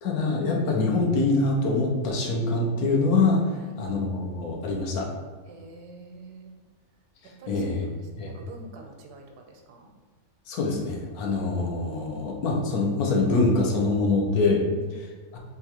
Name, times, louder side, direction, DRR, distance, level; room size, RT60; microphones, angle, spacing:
voice 1, 0.0-3.4 3.8-5.1 7.2-7.9 8.2-8.3 10.5-14.7 14.9-15.4, left 3 dB, 75° left, 0 dB, 1.1 m, -24 dB
voice 2, 5.5-6.5 7.2-9.9 14.6-15.1, right 2 dB, 90° right, 2 dB, 1.1 m, -46 dB
3.6 x 2.3 x 2.8 m, 1.5 s
omnidirectional pair, 1.6 m